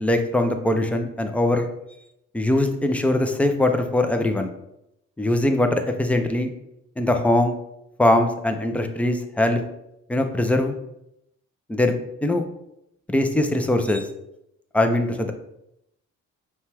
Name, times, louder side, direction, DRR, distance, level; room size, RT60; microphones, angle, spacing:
voice 1, 0.0-1.7 2.3-4.5 5.2-6.5 7.0-7.5 8.0-9.6 10.1-10.7 11.7-11.9 12.2-12.4 13.1-14.1 14.7-15.3, left 1 dB, 5° left, 5 dB, 0.5 m, -21 dB
5.5 x 2.3 x 3.3 m, 0.81 s
cardioid pair, 90°, 30 cm